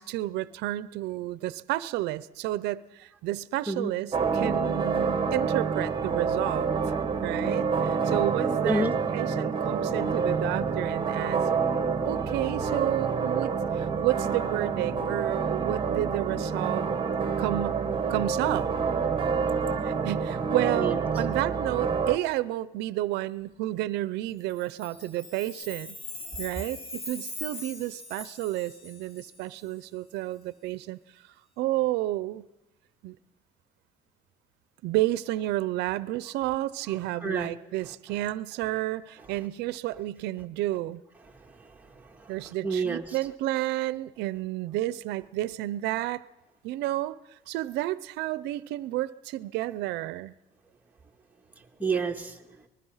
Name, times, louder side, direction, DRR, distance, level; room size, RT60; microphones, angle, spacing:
voice 1, 0.0-6.7 7.2-8.9 9.1-11.4 12.1-16.8 17.4-17.8 18.1-18.7 19.8-26.0 26.4-31.0 31.6-32.5 33.0-33.1 34.8-41.0 42.3-46.2 46.6-50.3, right 16 dB, 90° right, 16 dB, 0.7 m, -31 dB
sound 1, 4.1-22.2, right 5 dB, 30° right, 1.6 m, -28 dB
Chime, 24.5-29.6, left 2 dB, 35° left, 2.5 m, -41 dB
voice 2, 37.2-37.5 41.6-42.3 42.6-43.2 51.8-52.4, right 3 dB, 10° right, 1 dB, 2.0 m, -29 dB
24.5 x 21.0 x 5.7 m, 1.0 s
cardioid pair, 110°, 17 cm